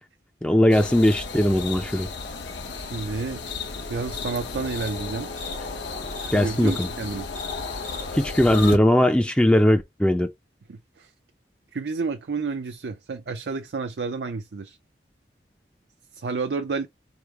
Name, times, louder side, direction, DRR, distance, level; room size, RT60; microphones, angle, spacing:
voice 1, 0.4-2.1 6.3-6.9 8.1-10.3, left 1 dB, 5° left, 0.4 m, -19 dB
sound 1, 0.7-8.8, left 4 dB, 85° left, 0.9 m, -33 dB
voice 2, 2.7-3.4 3.9-5.3 6.3-7.3 10.7-11.1 11.7-14.8 16.1-16.9, right 4 dB, 75° right, 0.5 m, -30 dB
4.9 x 2.1 x 4.5 m
head